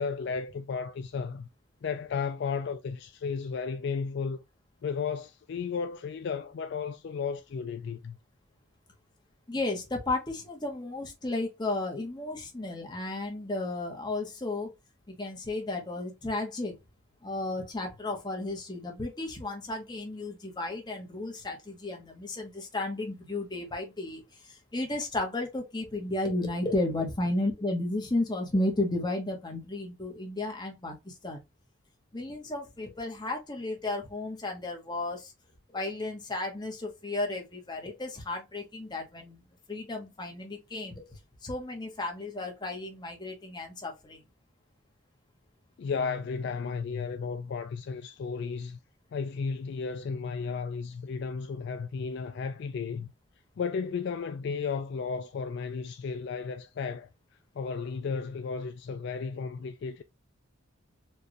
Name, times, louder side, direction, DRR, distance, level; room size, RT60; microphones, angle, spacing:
voice 1, 0.0-1.5 1.8-4.4 4.8-8.2 45.8-48.8 49.1-53.1 53.6-57.1 57.6-60.0, left 5 dB, 55° left, 0.3 m, -34 dB
voice 2, 9.5-14.7 15.1-16.7 17.2-31.4 32.1-35.3 35.7-39.4 39.7-41.0 41.4-44.2, left 2 dB, 20° left, 1.2 m, -33 dB
4.5 x 2.6 x 3.0 m
head